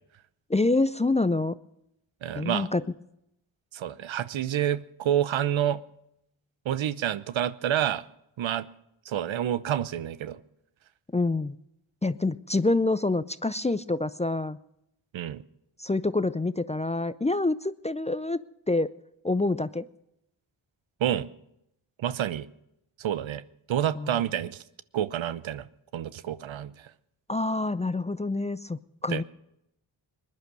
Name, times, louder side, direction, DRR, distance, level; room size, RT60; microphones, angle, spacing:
voice 1, 0.5-1.5 2.4-2.8 11.1-11.5 12.0-14.6 15.8-18.4 18.7-18.9 19.2-19.8 24.0-24.2 27.3-29.2, left 2 dB, 15° left, 0.5 m, -26 dB
voice 2, 2.2-2.7 3.7-5.8 6.6-8.1 8.4-8.7 9.1-10.4 15.1-15.4 21.0-21.3 22.0-22.5 23.0-24.6 24.9-25.7 25.9-26.9 29.1-29.2, right 10 dB, 65° right, 0.8 m, -28 dB
20.0 x 10.5 x 6.2 m
supercardioid pair, 40°, 50 cm